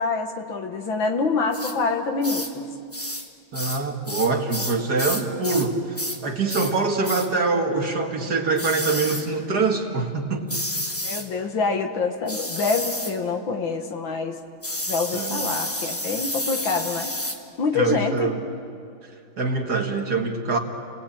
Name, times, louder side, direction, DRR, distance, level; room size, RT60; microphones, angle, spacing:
voice 1, 0.0-2.7 11.0-14.4 14.9-17.2 17.6-18.3, left 4 dB, 65° left, 4 dB, 2.3 m, -26 dB
sound 1, 1.5-1.8 2.2-2.5 2.9-3.3 3.5-5.7 6.0-6.2 6.5-6.8 7.0-7.3 8.6-9.3 10.5-11.3 12.3-13.2 14.6-17.4, left 1 dB, 10° left, 1.0 m, -30 dB
voice 2, 3.5-10.5 15.1-15.4 17.7-18.4 19.4-20.6, right 4 dB, 50° right, 3 dB, 2.2 m, -24 dB
30.0 x 19.5 x 8.7 m, 2.4 s
omnidirectional pair, 2.3 m